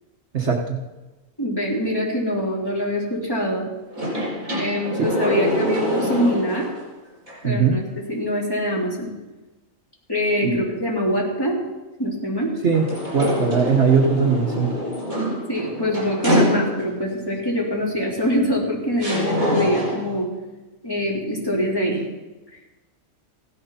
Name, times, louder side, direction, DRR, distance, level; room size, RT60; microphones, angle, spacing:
voice 1, 0.3-0.8 5.0-5.1 7.4-7.8 10.4-10.6 12.6-12.9 13.1-14.7, right 5 dB, 55° right, 2 dB, 1.4 m, -19 dB
voice 2, 1.4-3.7 4.5-6.7 7.4-7.8 8.1-9.1 10.1-11.6 12.0-12.5 15.5-20.3 20.8-22.0, equal, 15° left, -4 dB, 3.4 m, -24 dB
sound 1, 3.9-6.8 7.3-7.4 12.7-17.1 18.2-18.3 19.0-20.2, equal, 80° right, 5.7 m, -25 dB
16.0 x 11.0 x 5.7 m, 1.1 s
omnidirectional pair, 1.4 m